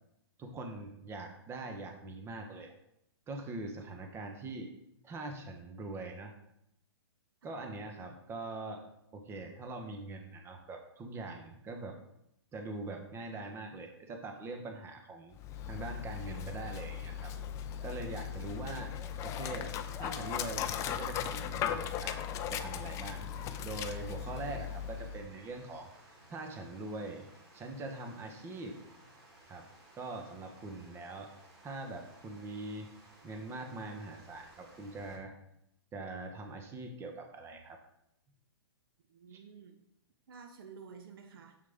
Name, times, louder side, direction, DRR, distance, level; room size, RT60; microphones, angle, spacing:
voice 1, 0.4-2.7 3.3-4.7 5.0-6.3 7.4-8.8 9.1-12.0 12.5-15.4 15.7-17.3 17.8-18.9 19.2-23.3 23.6-25.9 26.3-28.8 29.5-29.7 29.9-31.3 31.6-32.9 33.2-35.3 35.9-37.8 39.3-39.4, right 2 dB, 20° right, 4 dB, 1.0 m, -43 dB
Dog, 15.3-25.3, left 9 dB, 20° left, 0.4 m, -38 dB
Water, 23.3-35.2, right 2 dB, 40° right, 3.0 m, -58 dB
voice 2, 39.1-39.8 40.3-41.6, right 6 dB, 55° right, 6 dB, 0.8 m, -51 dB
6.7 x 6.4 x 3.5 m, 0.78 s
figure-of-eight pair, 115°, 14 cm